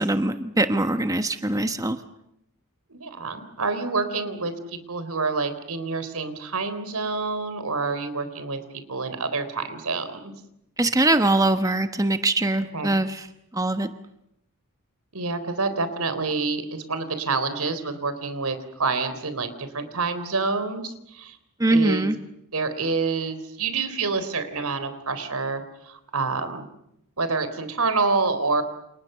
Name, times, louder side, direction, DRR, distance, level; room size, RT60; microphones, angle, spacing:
voice 1, 0.0-2.0 10.8-13.3 13.5-13.9 21.6-22.2, right 2 dB, 15° right, 9 dB, 1.2 m, -22 dB
voice 2, 2.9-8.6 8.9-10.3 12.7-12.9 15.1-21.4 21.7-22.1 22.5-26.7 27.2-28.6, right 4 dB, 85° right, 11 dB, 3.9 m, -27 dB
29.5 x 28.5 x 6.9 m, 0.79 s
head